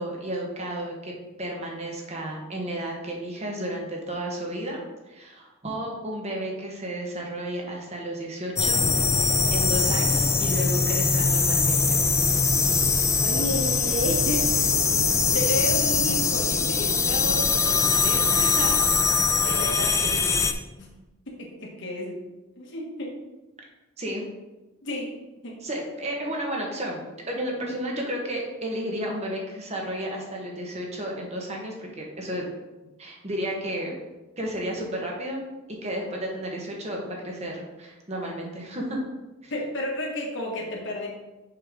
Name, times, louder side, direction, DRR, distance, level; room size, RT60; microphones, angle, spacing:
voice 1, 0.0-8.9 9.2-12.0 24.0-24.2 25.6-32.5 33.0-34.0 34.4-39.0 39.4-39.5, right 1 dB, 30° right, -1 dB, 1.2 m, -32 dB
sound 1, 8.6-20.5, left 4 dB, 15° left, 0.3 m, -22 dB
voice 2, 13.2-18.8 19.4-20.4 20.8-20.9 21.3-22.2 22.6-23.1 24.8-25.1 25.4-25.6 27.7-27.8 39.5-41.1, left 1 dB, 55° left, -1 dB, 1.4 m, -32 dB
6.8 x 5.4 x 3.6 m, 1.1 s
head